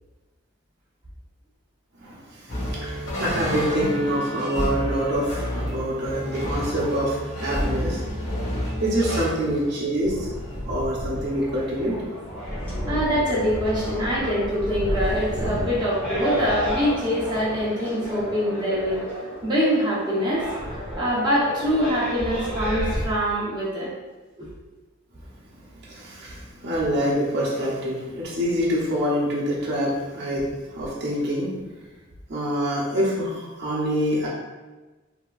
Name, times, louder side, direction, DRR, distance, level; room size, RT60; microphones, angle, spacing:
sound 1, 2.5-12.8 13.5-14.6 15.0-17.4, equal, 70° left, 1.0 m, -32 dB
voice 1, 2.6-8.0 8.8-10.1 10.7-11.9 25.9-30.4 30.7-31.5 32.3-34.3, equal, 55° right, -6 dB, 0.7 m, -25 dB
sound 2, 10.0-23.1, equal, 5° left, 0.9 m, -32 dB
voice 2, 12.8-19.0 19.4-23.9 24.4-24.5, equal, 20° right, -8 dB, 0.8 m, -24 dB
3.4 x 2.8 x 2.3 m, 1.2 s
head